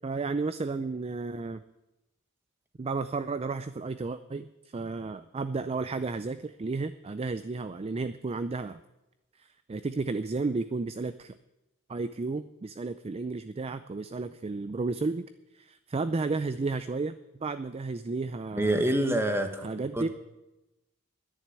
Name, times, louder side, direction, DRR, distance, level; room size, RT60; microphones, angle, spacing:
voice 1, 0.0-1.6 2.8-8.8 9.4-11.3 11.9-15.3 15.5-18.8 19.6-20.1, right 3 dB, 25° right, 12 dB, 0.4 m, -33 dB
voice 2, 18.6-19.6 19.9-20.1, right 1 dB, 10° right, 6 dB, 1.3 m, -26 dB
10.5 x 10.0 x 9.6 m, 0.97 s
head